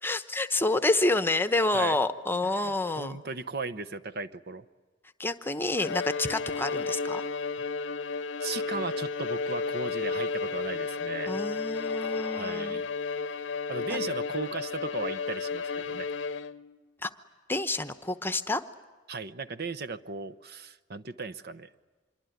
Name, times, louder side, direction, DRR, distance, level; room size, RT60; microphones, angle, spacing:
voice 1, 0.0-3.2 5.2-7.2 11.3-12.8 13.9-14.0 17.0-17.1 17.5-18.6, left 2 dB, 10° left, 11 dB, 0.9 m, -28 dB
voice 2, 2.4-4.6 8.4-11.4 12.3-12.9 13.3-13.4 13.7-16.1 19.1-21.7, right 4 dB, 55° right, 10 dB, 0.9 m, -37 dB
Bowed string instrument, 5.8-16.8, left 4 dB, 70° left, 0.8 m, -32 dB
26.0 x 23.5 x 9.4 m, 1.3 s
head